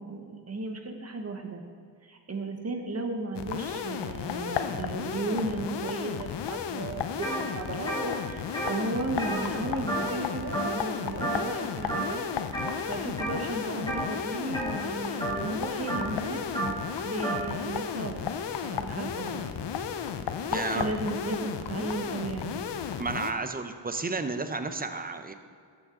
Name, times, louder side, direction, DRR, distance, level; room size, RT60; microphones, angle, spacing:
voice 1, 0.0-1.6 2.0-12.2 12.9-16.4 17.0-18.3 18.6-19.4 20.5-22.6, right 2 dB, 35° right, 4 dB, 1.2 m, -35 dB
sound 1, 3.3-23.3, left 7 dB, 80° left, 0.7 m, -34 dB
sound 2, 7.2-7.4 7.7-10.3 10.5-10.9 11.2-11.6 11.9-12.7 13.2-13.5 13.8-17.5, right 2 dB, 10° left, 2.4 m, -32 dB
voice 2, 20.5-20.9 23.0-25.3, right 3 dB, 20° right, 8 dB, 0.7 m, -32 dB
13.5 x 6.2 x 3.8 m, 2.3 s
cardioid pair, 80°, 42 cm